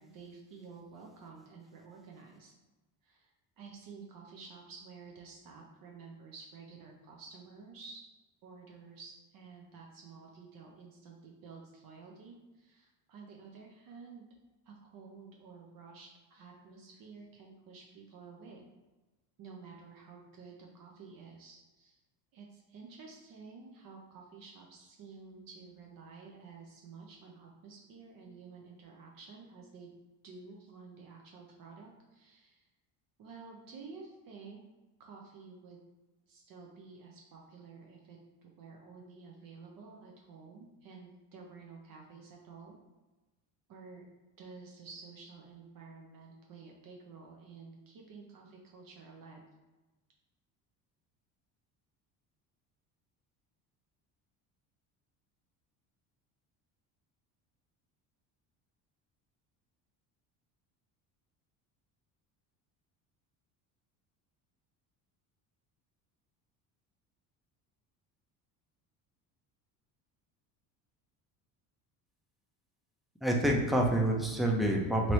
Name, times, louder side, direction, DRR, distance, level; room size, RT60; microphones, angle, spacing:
voice 1, 0.0-2.5 3.0-8.0 8.4-14.3 14.6-18.7 19.4-22.0 22.3-29.9 30.2-32.7 33.2-34.6 35.0-35.8 36.3-42.8 43.7-44.1 44.4-49.4, right 4 dB, 50° right, 0 dB, 0.6 m, -51 dB
voice 2, 73.2-75.1, right 1 dB, ahead, 0 dB, 0.3 m, -27 dB
2.9 x 2.7 x 3.0 m, 1.2 s
supercardioid pair, 95°, 43 cm